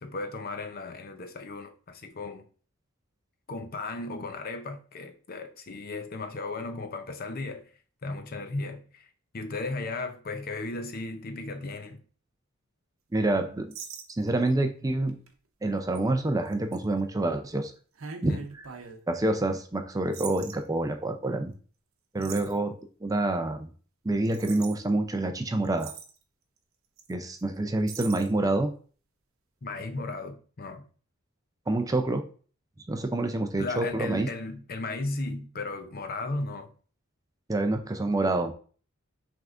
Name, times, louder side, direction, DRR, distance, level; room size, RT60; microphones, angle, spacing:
voice 1, 0.0-2.5 3.5-7.7 8.0-9.1 9.3-12.0 18.3-18.5 22.3-22.5 29.6-30.9 33.6-36.7, left 2 dB, 45° left, 0.6 m, -35 dB
voice 2, 13.1-13.7 14.2-15.2 15.6-17.7 18.2-18.4 19.1-21.5 22.1-22.8 23.0-23.7 24.0-25.9 27.1-28.7 31.7-32.2 32.9-34.3 37.5-38.5, right 2 dB, 15° right, 0.4 m, -27 dB
sound 1, 13.7-14.5 15.1-15.3 15.9-16.0 16.5-16.8 18.0-19.0 20.1-20.5 22.2-22.6 24.2-24.8 25.4-25.5 25.6-26.2 27.0-27.1 27.4-27.5 27.9-28.3, right 6 dB, 75° right, 0.8 m, -41 dB
6.0 x 3.5 x 2.5 m
head